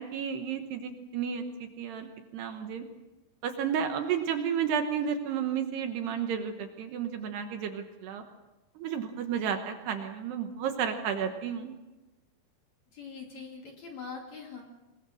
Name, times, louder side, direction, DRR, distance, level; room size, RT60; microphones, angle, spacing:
voice 1, 0.0-2.8 3.4-8.2 8.8-11.8, right 7 dB, 70° right, 6 dB, 3.0 m, -32 dB
voice 2, 12.9-14.6, left 5 dB, 45° left, 1 dB, 3.1 m, -42 dB
23.5 x 21.0 x 6.5 m, 1.1 s
omnidirectional pair, 5.5 m